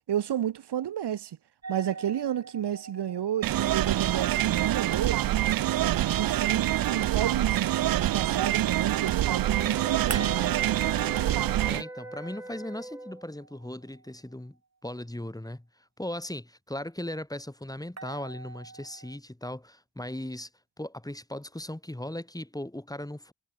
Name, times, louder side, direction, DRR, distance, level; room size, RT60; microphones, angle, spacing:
voice 1, 0.1-1.4 1.7-5.2 5.8-10.6, right 10 dB, 75° right, 1.8 m, -31 dB
sound 1, 1.6-6.6 10.1-14.2 18.0-19.2, right 4 dB, 40° right, 6.7 m, -44 dB
sound 2, 3.4-11.8, right 13 dB, 60° right, 0.5 m, -26 dB
sound 3, 9.4-13.3, right 1 dB, 5° right, 1.1 m, -42 dB
voice 2, 11.6-14.6 14.8-15.7 16.0-20.5 20.8-23.3, left 1 dB, 10° left, 3.0 m, -38 dB
cardioid pair, 50°, 40 cm